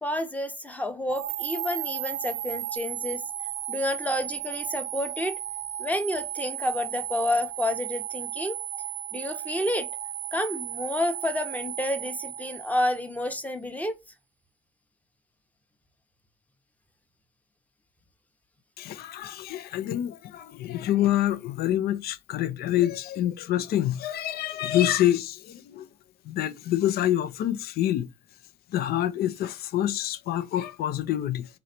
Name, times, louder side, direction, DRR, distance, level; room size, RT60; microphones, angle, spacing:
voice 1, 0.0-3.2 3.7-5.4 5.8-8.6 9.1-9.9 10.3-14.0, left 1 dB, 10° left, 0.8 m, -29 dB
sound 1, 1.1-13.3, right 13 dB, 75° right, 0.5 m, -35 dB
voice 2, 18.8-25.9 26.3-28.1 28.7-31.5, left 12 dB, 65° left, 0.6 m, -27 dB
4.0 x 3.1 x 4.2 m
cardioid pair, 110°, 17 cm